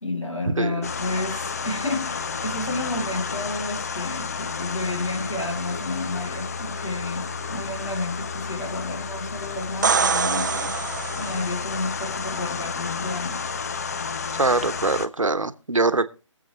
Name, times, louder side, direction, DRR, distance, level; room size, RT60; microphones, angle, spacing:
voice 1, 0.0-10.8 11.2-13.5, left 2 dB, 80° left, 2.8 m, -31 dB
sound 1, 0.8-15.1, left 5 dB, 30° left, 0.6 m, -31 dB
sound 2, 9.6-11.6 15.3-15.4, right 5 dB, 35° right, 0.5 m, -24 dB
voice 2, 14.3-16.1, right 3 dB, 80° right, 1.1 m, -23 dB
22.0 x 7.8 x 3.2 m
figure-of-eight pair, 155°, 16 cm